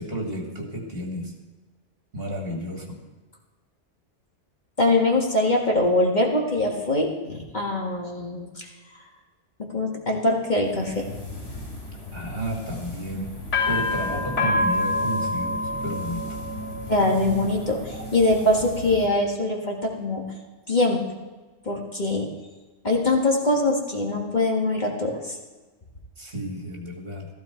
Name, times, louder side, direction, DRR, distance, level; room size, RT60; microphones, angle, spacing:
voice 1, 0.0-1.3 2.1-3.0 12.1-13.3 13.7-16.3 26.2-27.3, equal, 55° right, 0 dB, 2.6 m, -32 dB
voice 2, 4.8-8.5 9.7-11.1 16.9-17.8 18.1-20.2 20.7-21.0 21.7-22.3 22.8-25.4, left 2 dB, 40° left, 0 dB, 1.9 m, -23 dB
sound 1, 10.7-19.1, left 2 dB, 85° left, 3.9 m, -29 dB
15.0 x 14.5 x 4.5 m, 1.2 s
omnidirectional pair, 1.2 m